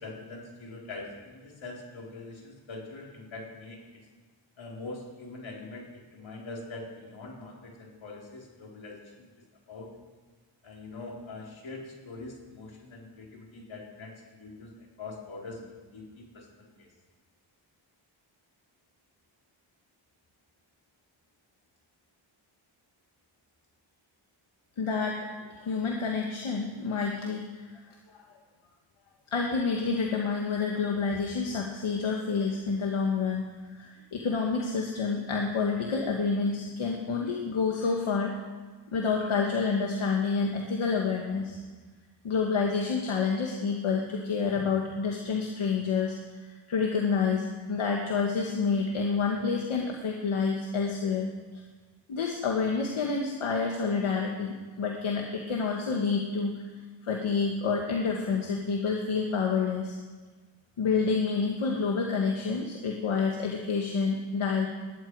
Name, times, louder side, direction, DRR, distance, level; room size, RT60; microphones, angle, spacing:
voice 1, 0.0-4.0 4.6-9.1 9.7-9.9 10.6-14.7 15.0-16.9 37.8-37.9, left 3 dB, 70° left, -2 dB, 4.2 m, -43 dB
voice 2, 24.8-25.2 25.5-28.2 29.3-33.4 33.7-38.4 38.9-41.6 42.2-46.1 46.5-51.3 52.1-56.7 57.0-60.0 60.8-64.7, left 5 dB, 90° left, 0 dB, 1.7 m, -28 dB
20.0 x 13.0 x 4.8 m, 1.4 s
wide cardioid pair, 125°, 48 cm